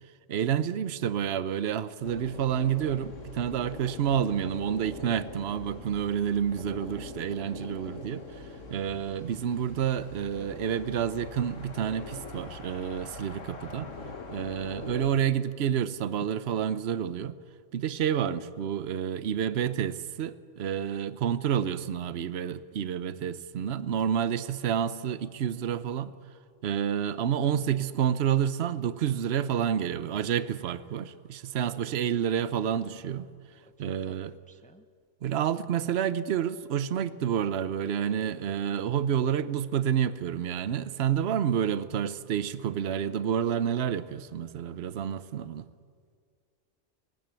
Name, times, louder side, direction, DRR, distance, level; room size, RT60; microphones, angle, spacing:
voice 1, 0.3-8.2 8.7-13.9 14.3-17.3 17.7-26.1 26.6-33.3 33.8-34.3 35.2-45.7, right 9 dB, 60° right, 14 dB, 1.0 m, -29 dB
sound 1, 2.0-15.1, left 3 dB, 85° left, 2.1 m, -43 dB
voice 2, 31.6-32.0 33.6-34.9, right 1 dB, 10° left, 8 dB, 0.6 m, -55 dB
20.0 x 17.5 x 9.0 m, 2.1 s
omnidirectional pair, 1.3 m